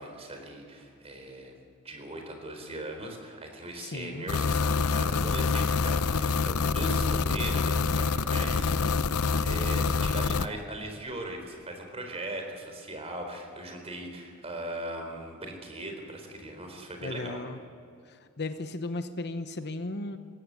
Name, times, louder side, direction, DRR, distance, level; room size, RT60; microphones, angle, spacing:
voice 1, 0.0-1.5 1.8-8.7 9.4-17.4, right 1 dB, 30° right, 4 dB, 4.2 m, -39 dB
voice 2, 3.8-4.2 17.0-17.6 18.1-20.2, left 2 dB, 50° left, 9 dB, 1.0 m, -35 dB
sound 1, 4.3-10.5, left 4 dB, 80° left, 0.7 m, -26 dB
20.5 x 16.5 x 8.3 m, 2.4 s
head